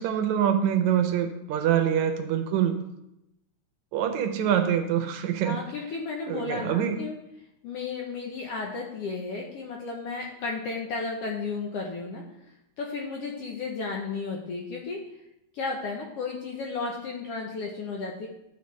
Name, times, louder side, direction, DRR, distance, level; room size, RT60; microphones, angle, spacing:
voice 1, 0.0-2.8 3.9-5.6 6.3-7.0, right 9 dB, 80° right, 6 dB, 1.9 m, -25 dB
voice 2, 5.4-7.2 7.6-12.2 12.8-15.0 15.5-18.3, left 4 dB, 70° left, 0 dB, 1.5 m, -33 dB
10.5 x 4.6 x 3.1 m, 0.85 s
omnidirectional pair, 3.4 m